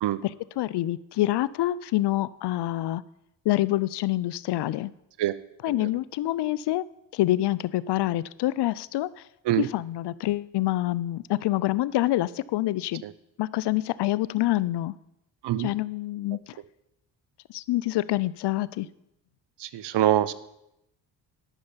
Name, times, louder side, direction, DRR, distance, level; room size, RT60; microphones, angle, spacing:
voice 1, 0.6-3.0 3.5-4.9 5.6-6.8 7.1-9.1 9.6-13.0 13.4-14.9 15.6-16.4 17.5-18.9, left 16 dB, 60° left, 19 dB, 0.6 m, -26 dB
voice 2, 19.6-20.3, right 12 dB, 60° right, 17 dB, 0.8 m, -24 dB
11.5 x 6.5 x 7.2 m, 0.83 s
supercardioid pair, 65°, 46 cm